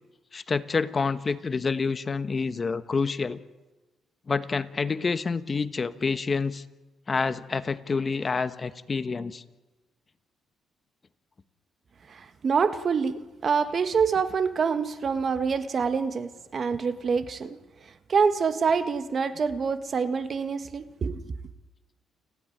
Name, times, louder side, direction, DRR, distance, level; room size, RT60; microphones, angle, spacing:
voice 1, 0.3-3.4 4.3-6.6 7.1-9.4, left 4 dB, 35° left, 12 dB, 1.2 m, -28 dB
voice 2, 12.1-17.6 18.1-21.2, right 5 dB, 45° right, 11 dB, 1.5 m, -26 dB
29.5 x 12.0 x 10.0 m, 1.1 s
cardioid pair, 90°, 0 cm